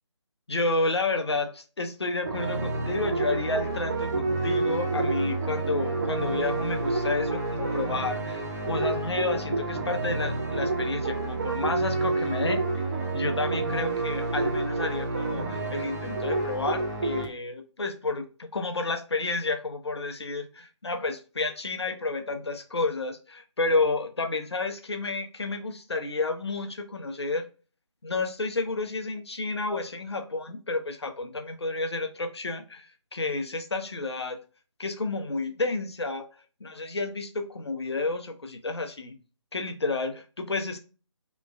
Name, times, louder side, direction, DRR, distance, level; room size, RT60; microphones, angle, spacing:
voice 1, 0.5-12.6 13.1-27.4 28.0-34.4 34.8-36.2 36.6-39.1 39.5-40.8, left 3 dB, 60° left, 0.7 m, -30 dB
sound 1, 2.2-17.2, right 3 dB, 35° right, 0.9 m, -29 dB
3.5 x 3.0 x 2.4 m
figure-of-eight pair, 155°, 16 cm